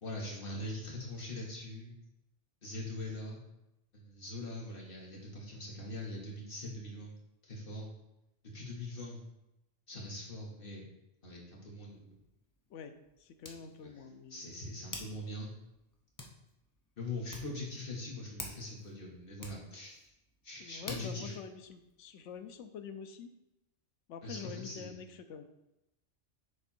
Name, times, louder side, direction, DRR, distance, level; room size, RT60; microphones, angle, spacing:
voice 1, 0.0-1.9 2.6-3.4 3.9-7.1 7.4-7.9 8.5-9.2 9.9-10.8 11.2-12.1 13.6-13.9 14.3-15.5 17.0-20.1 20.4-21.3 24.2-24.9, left 2 dB, 50° left, -3 dB, 1.7 m, -42 dB
Hands, 11.8-22.6, left 2 dB, 20° left, 0.6 m, -52 dB
voice 2, 12.7-14.4 20.6-23.3 24.1-25.4, left 6 dB, 75° left, 8 dB, 0.9 m, -46 dB
6.7 x 3.5 x 4.4 m, 0.90 s
omnidirectional pair, 1.3 m